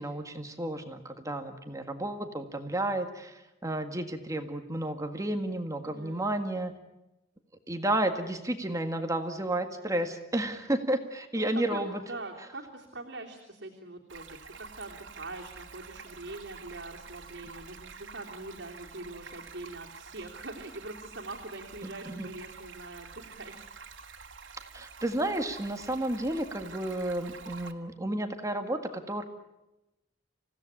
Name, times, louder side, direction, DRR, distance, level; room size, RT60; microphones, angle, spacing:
voice 1, 0.0-6.7 7.7-12.0 21.8-22.3 24.7-28.8 29.1-29.2, right 1 dB, 15° right, 6 dB, 1.7 m, -32 dB
voice 2, 5.8-6.3 11.3-14.3 14.6-23.7, right 2 dB, 70° right, -2 dB, 3.2 m, -43 dB
Stream, 14.1-27.7, right 5 dB, 90° right, 2.1 m, -48 dB
28.0 x 17.0 x 10.0 m, 0.98 s
head